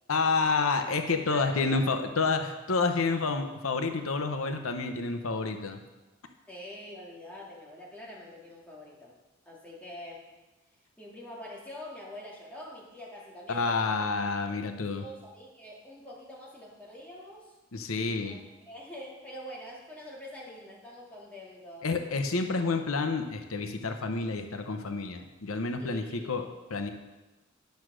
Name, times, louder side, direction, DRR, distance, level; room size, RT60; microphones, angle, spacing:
voice 1, 0.1-5.8 13.5-15.0 17.7-18.4 21.8-26.9, left 4 dB, 90° left, 6 dB, 0.8 m, -29 dB
voice 2, 1.3-1.8 6.5-9.1 9.5-10.3 11.0-14.1 14.5-17.5 18.2-18.4 18.7-21.9 25.8-26.4, left 1 dB, 5° left, -5 dB, 2.3 m, -45 dB
10.5 x 6.4 x 6.2 m, 1.1 s
head